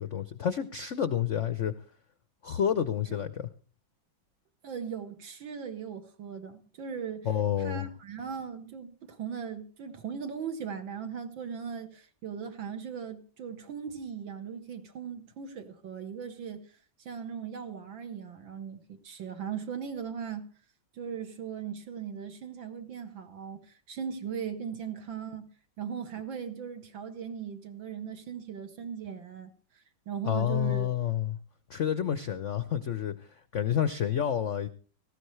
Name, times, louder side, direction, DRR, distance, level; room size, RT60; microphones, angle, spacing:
voice 1, 0.0-1.7 2.4-3.5 7.2-7.9 30.2-31.4 31.7-34.7, left 9 dB, 60° left, 0.7 m, -29 dB
voice 2, 4.6-7.3 7.6-20.5 20.9-25.5 25.8-29.5 30.1-30.9, right 7 dB, 70° right, 2.2 m, -38 dB
18.5 x 14.5 x 3.2 m
omnidirectional pair, 2.2 m